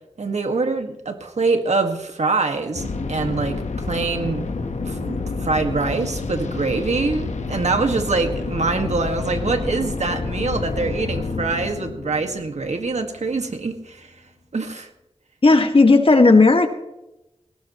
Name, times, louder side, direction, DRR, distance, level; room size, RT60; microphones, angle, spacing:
voice 1, 0.2-3.6 3.9-4.6 4.8-14.1 14.5-14.9, right 3 dB, 80° right, 5 dB, 2.0 m, -24 dB
sound 1, 2.7-13.5, left 3 dB, 90° left, 1.4 m, -29 dB
voice 2, 15.4-16.7, left 3 dB, 55° left, 5 dB, 2.0 m, -13 dB
19.0 x 17.0 x 3.2 m, 0.91 s
wide cardioid pair, 50°, 12 cm